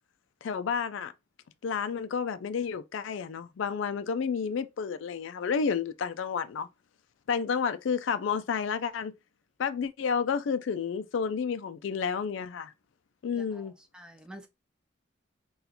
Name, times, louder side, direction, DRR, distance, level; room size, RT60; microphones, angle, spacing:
voice 1, 0.4-1.1 1.6-6.7 7.3-9.1 9.6-12.7 13.2-13.7, left 6 dB, 65° left, 0.3 m, -30 dB
voice 2, 13.3-14.5, right 1 dB, 5° right, 0.4 m, -49 dB
4.1 x 2.4 x 2.7 m
head